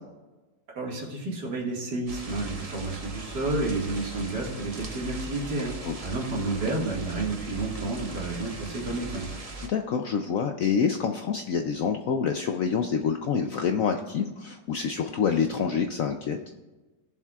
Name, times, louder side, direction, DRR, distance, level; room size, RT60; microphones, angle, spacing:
voice 1, 0.8-5.7 6.0-9.3, right 2 dB, 65° right, -3 dB, 2.5 m, -30 dB
sound 1, 2.1-9.7, right 2 dB, 25° right, 0.8 m, -39 dB
voice 2, 9.7-16.4, left 6 dB, 70° left, 5 dB, 0.8 m, -27 dB
17.5 x 7.2 x 2.4 m, 1.2 s
omnidirectional pair, 1.9 m